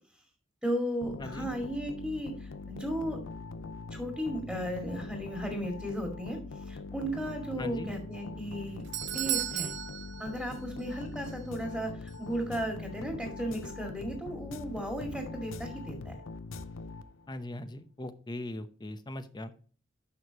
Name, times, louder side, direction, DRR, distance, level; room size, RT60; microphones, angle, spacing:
voice 1, 0.6-3.2 3.9-8.8 9.1-9.7 10.2-16.1, equal, ahead, 2 dB, 2.1 m, -35 dB
sound 1, 1.0-17.4, left 3 dB, 80° left, 0.6 m, -42 dB
voice 2, 1.2-1.5 7.6-7.9 17.3-19.5, left 1 dB, 20° left, 11 dB, 0.8 m, -40 dB
Doorbell, 8.5-11.0 11.2-11.3 12.1-12.2, right 13 dB, 65° right, 0.5 m, -35 dB
11.0 x 6.5 x 2.9 m, 0.42 s
head